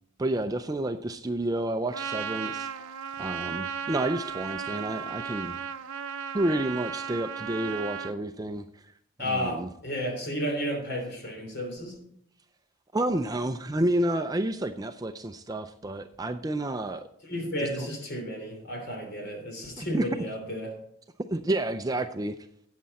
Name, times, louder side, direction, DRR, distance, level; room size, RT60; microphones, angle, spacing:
voice 1, 0.2-2.7 3.2-5.6 6.3-8.7 9.2-9.7 12.9-17.1 17.6-17.7 19.8-20.1 21.3-22.3, right 1 dB, 15° right, 8 dB, 0.4 m, -30 dB
Trumpet, 1.9-8.2, right 7 dB, 85° right, 0.7 m, -35 dB
voice 2, 9.2-12.0 17.3-20.8, equal, 45° left, 2 dB, 3.2 m, -32 dB
13.0 x 8.6 x 4.1 m, 0.70 s
head